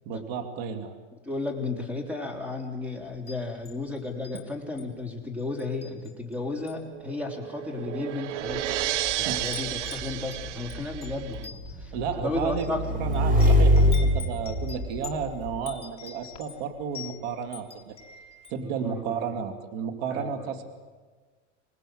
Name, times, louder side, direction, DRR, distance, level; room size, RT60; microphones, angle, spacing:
voice 1, 0.1-0.9 9.2-9.5 11.9-12.7 13.0-18.0 18.5-20.6, right 6 dB, 55° right, 7 dB, 2.5 m, -32 dB
voice 2, 1.2-8.7 9.1-12.8 18.6-19.3 20.1-20.5, left 3 dB, 5° right, 2 dB, 3.7 m, -34 dB
Wind chime, 3.1-4.4 4.8-5.0 5.6-6.3 6.6-6.9 7.6-7.7 8.4-8.9 9.1-18.6, left 6 dB, 15° left, 2.0 m, -45 dB
sound 1, 6.6-11.5, right 13 dB, 75° right, 0.9 m, -33 dB
Motorcycle / Engine, 8.5-15.6, equal, 20° right, 4.3 m, -25 dB
25.5 x 19.5 x 7.7 m, 1.4 s
supercardioid pair, 130°, 36 cm